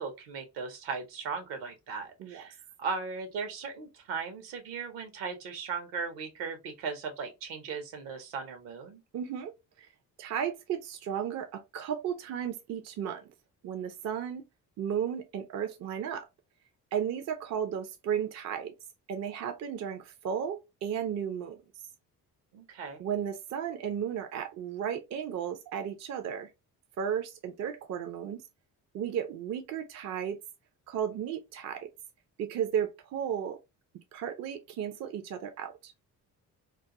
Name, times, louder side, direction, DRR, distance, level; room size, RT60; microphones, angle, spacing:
voice 1, 0.0-9.0 22.5-23.0, right 5 dB, 60° right, 0.8 m, -37 dB
voice 2, 9.1-9.9 10.2-13.3 13.6-14.4 14.8-16.3 16.9-18.7 19.1-21.6 23.0-26.5 27.0-28.4 28.9-30.4 30.9-31.9 32.4-33.6 34.1-35.9, right 8 dB, 35° right, 0.5 m, -34 dB
2.3 x 2.2 x 2.8 m
figure-of-eight pair, 45°, 48 cm